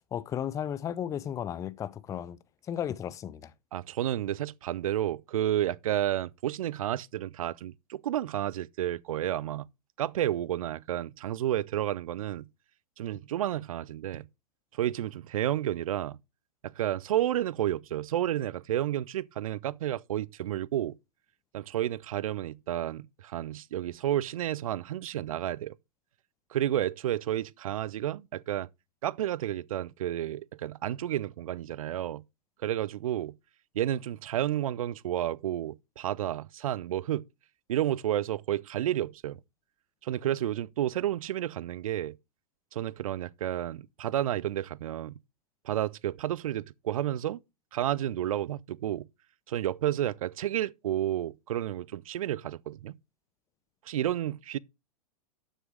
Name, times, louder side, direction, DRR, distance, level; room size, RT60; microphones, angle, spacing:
voice 1, 0.1-2.4 2.7-3.5, left 9 dB, 15° left, 0.6 m, -34 dB
voice 2, 3.7-9.7 10.0-12.5 13.0-14.3 14.7-16.2 16.6-21.0 21.5-25.7 26.5-28.7 29.0-32.2 32.6-33.3 33.7-37.2 37.7-39.4 40.0-42.2 42.7-45.1 45.6-47.4 47.7-49.0 49.5-53.0 53.9-54.6, right 12 dB, 55° right, 0.5 m, -31 dB
12.0 x 6.3 x 3.4 m
figure-of-eight pair, 110°, 21 cm